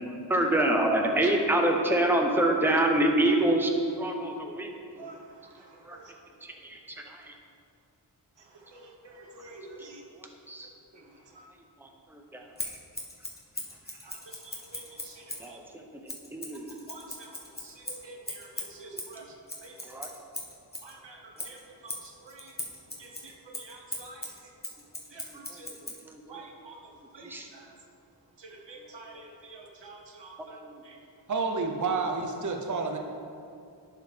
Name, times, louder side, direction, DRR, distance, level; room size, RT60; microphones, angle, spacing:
voice 1, 0.1-3.7 4.0-4.7 4.9-5.1 5.9-6.0 6.4-6.8 7.1-7.3 9.8-9.9 10.5-10.7 11.8-12.4 15.4-16.0 16.3-16.7 19.8-20.1 25.5-25.7 26.0-26.4 27.2-27.5 30.6-30.7, right 1 dB, 5° right, 2 dB, 0.8 m, -27 dB
voice 2, 8.7-10.0 14.0-15.6 16.9-17.3 17.6-19.2 19.6-19.7 20.8-21.2 21.4-21.6 21.8-22.5 23.0-24.2 25.1-25.7 26.3-26.8 27.1-27.6 28.7-30.6 30.9-31.0, right 3 dB, 85° right, 1 dB, 1.0 m, -48 dB
Scissors, 12.6-15.5 16.1-20.9 21.4-26.0, left 1 dB, 20° left, 1.2 m, -40 dB
voice 3, 31.3-33.0, right 4 dB, 45° right, 3 dB, 0.7 m, -29 dB
11.0 x 5.0 x 3.3 m, 2.5 s
wide cardioid pair, 55°, 42 cm